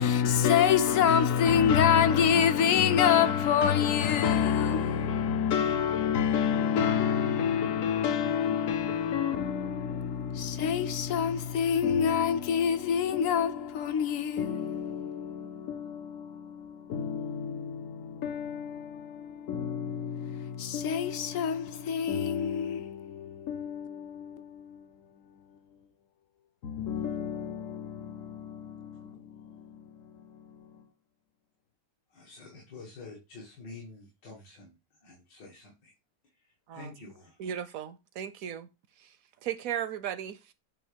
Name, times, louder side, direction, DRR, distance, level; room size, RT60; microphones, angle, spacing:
voice 1, 0.0-24.9 26.6-30.7, left 8 dB, 65° left, 0.8 m, -27 dB
voice 2, 32.1-35.9 36.3-37.4, left 3 dB, 85° left, 2.3 m, -48 dB
voice 3, 37.4-38.7 39.0-39.1 39.4-40.5, right 9 dB, 70° right, 0.8 m, -36 dB
8.6 x 3.0 x 5.1 m
omnidirectional pair, 1.8 m